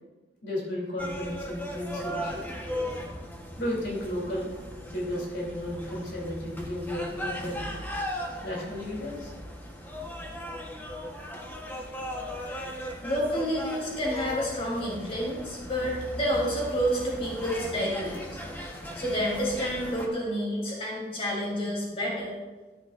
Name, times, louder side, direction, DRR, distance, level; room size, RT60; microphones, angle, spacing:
voice 1, 0.4-2.5 3.6-4.5 4.9-7.7 8.4-9.3 12.4-12.5, left 1 dB, 85° left, -3 dB, 2.9 m, -33 dB
sound 1, 1.0-20.1, equal, 10° left, 1.0 m, -38 dB
voice 2, 13.0-18.2 18.9-22.3, equal, 30° left, -4 dB, 3.0 m, -29 dB
13.0 x 10.0 x 2.5 m, 1.2 s
head